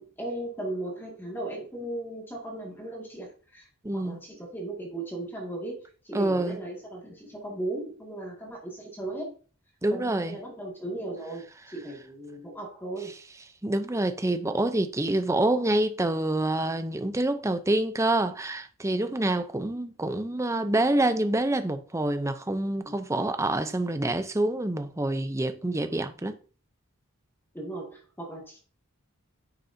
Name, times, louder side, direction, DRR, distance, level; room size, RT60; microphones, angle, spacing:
voice 1, 0.0-3.7 3.9-9.3 9.9-13.1 22.8-22.9 27.5-28.6, right 2 dB, 10° left, 2.1 m, -37 dB
voice 2, 3.8-4.2 6.1-6.6 9.8-10.4 13.6-26.4, right 1 dB, 15° right, 0.6 m, -27 dB
10.0 x 6.6 x 2.7 m
head